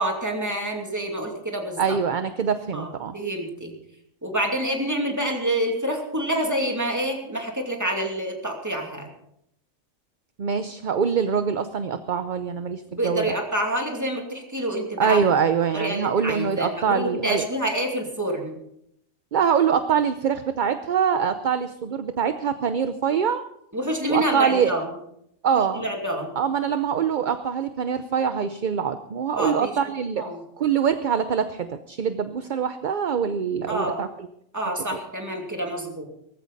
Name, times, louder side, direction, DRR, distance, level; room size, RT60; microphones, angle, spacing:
voice 1, 0.0-2.0 2.7-3.8 4.2-9.1 13.0-15.2 15.7-18.6 23.7-24.9 25.5-26.3 29.3-29.8 30.2-30.4 33.7-34.0 34.5-36.0, right 1 dB, 15° right, 1 dB, 2.6 m, -27 dB
voice 2, 1.8-3.1 10.4-13.3 15.0-17.4 19.3-23.4 24.1-24.7 25.4-25.9 26.4-30.2 30.6-34.1, right 7 dB, 45° right, 10 dB, 0.7 m, -24 dB
18.5 x 15.0 x 4.1 m, 0.76 s
omnidirectional pair, 1.4 m